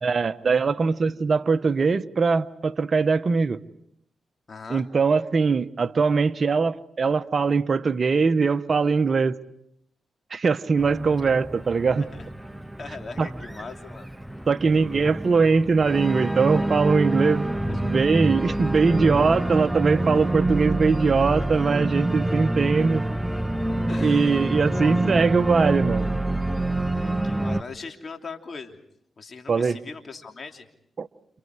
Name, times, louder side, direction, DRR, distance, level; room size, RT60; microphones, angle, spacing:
voice 1, 0.0-3.6 4.7-9.4 10.3-12.0 13.2-13.3 14.5-17.5 17.8-23.1 24.0-26.1 29.5-29.8 31.0-31.1, right 4 dB, 50° right, 1.1 m, -21 dB
voice 2, 4.5-4.9 12.1-12.3 12.8-14.1 17.7-17.8 18.5-18.6 21.4-21.5 23.9-25.0 26.9-28.8 29.2-30.7, left 4 dB, 50° left, 3.1 m, -40 dB
Organ, 10.8-27.6, right 1 dB, 10° right, 0.9 m, -27 dB
29.5 x 29.5 x 4.8 m
supercardioid pair, 50°, 0 cm